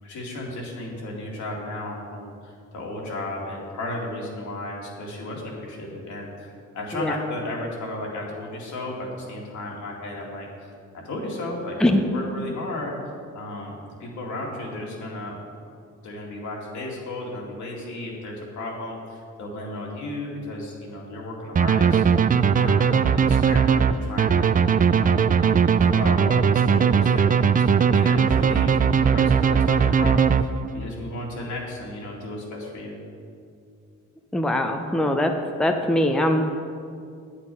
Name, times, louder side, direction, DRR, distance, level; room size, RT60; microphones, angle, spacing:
voice 1, 0.0-12.9 13.3-15.4 16.0-22.0 22.4-24.5 24.9-30.3 30.7-33.0, left 1 dB, 70° left, -2 dB, 2.3 m, -34 dB
sound 1, 21.5-30.9, right 6 dB, 30° right, 0.4 m, -19 dB
voice 2, 34.3-35.3 35.6-36.4, left 1 dB, ahead, 4 dB, 0.7 m, -21 dB
8.5 x 8.5 x 5.4 m, 2.3 s
cardioid pair, 90°, 30 cm